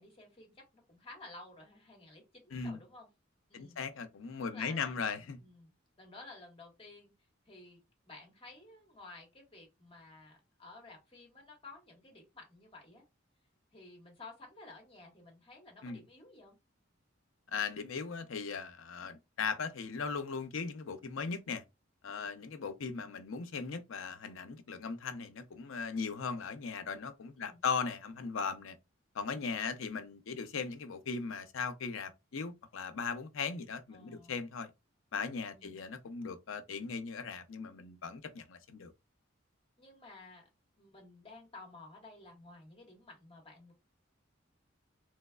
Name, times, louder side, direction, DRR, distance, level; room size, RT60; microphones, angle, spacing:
voice 1, 0.0-3.1 3.5-3.8 4.4-5.1 5.4-5.7 6.0-7.1 7.5-13.0 13.7-16.6 27.4-27.6 33.9-34.4 35.5-35.8 39.8-40.5 40.8-43.7, left 2 dB, 30° left, 1.3 m, -54 dB
voice 2, 2.5-2.8 3.5-5.4 15.8-16.0 17.5-21.6 22.0-28.8 29.1-34.7 35.1-38.9, left 5 dB, 80° left, 0.6 m, -38 dB
3.3 x 3.1 x 2.3 m
head